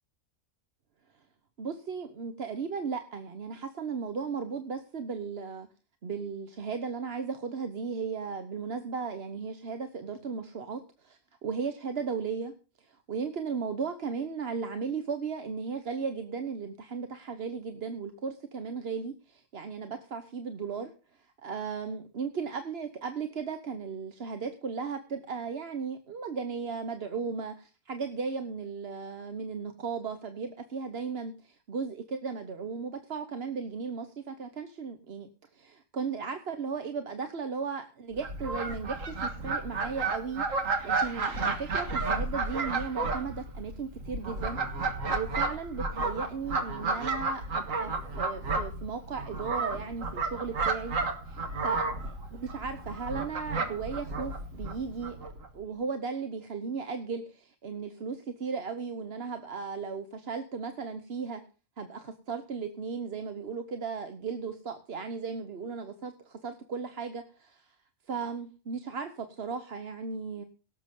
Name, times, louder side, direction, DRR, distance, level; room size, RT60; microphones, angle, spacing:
voice 1, 1.6-5.7 6.0-12.5 12.8-44.6 45.1-51.0 51.3-61.4 61.8-67.7 68.1-70.4, right 5 dB, 50° right, 9 dB, 1.2 m, -36 dB
Fowl, 38.2-55.5, right 3 dB, 75° right, 2.0 m, -32 dB
17.5 x 7.5 x 5.4 m, 0.36 s
omnidirectional pair, 1.4 m